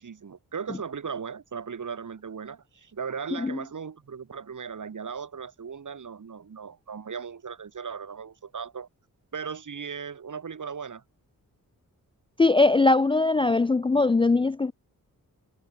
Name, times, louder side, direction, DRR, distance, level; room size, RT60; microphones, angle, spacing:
voice 1, 0.0-8.9 9.3-11.0, right 6 dB, 60° right, 5.5 m, -37 dB
voice 2, 12.4-14.7, left 3 dB, 15° left, 0.3 m, -21 dB
wide cardioid pair, 120°, 35 cm